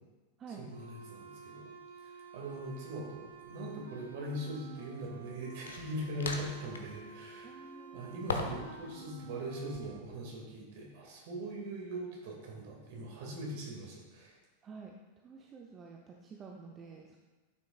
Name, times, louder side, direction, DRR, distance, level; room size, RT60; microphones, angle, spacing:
voice 1, 0.6-1.7 2.0-7.6 7.9-14.4, right 1 dB, 50° right, -1 dB, 2.2 m, -41 dB
sound 1, 0.7-10.0, right 5 dB, 70° right, 0.8 m, -51 dB
sound 2, 3.3-3.5 5.7-7.0 8.3-8.8 9.0-9.9, left 4 dB, 70° left, 0.8 m, -39 dB
voice 2, 7.4-8.0 14.6-14.9 15.2-17.2, right 5 dB, 25° right, 1 dB, 0.6 m, -49 dB
11.0 x 6.3 x 2.4 m, 1.2 s
figure-of-eight pair, 90°, 0 cm